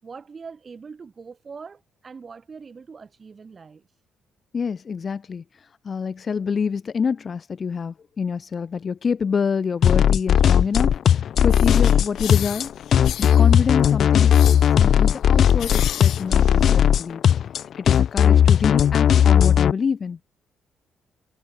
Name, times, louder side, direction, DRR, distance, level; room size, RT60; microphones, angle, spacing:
voice 1, 0.0-3.8, right 5 dB, 40° right, 6.4 m, -42 dB
voice 2, 4.5-5.4 5.8-12.7 13.0-14.3 14.8-17.2 17.8-20.2, left 6 dB, 40° left, 2.6 m, -27 dB
sound 1, 9.8-19.7, left 9 dB, 60° left, 0.4 m, -17 dB
sound 2, 11.5-17.1, left 12 dB, 75° left, 3.5 m, -34 dB
cardioid pair, 90°, 0 cm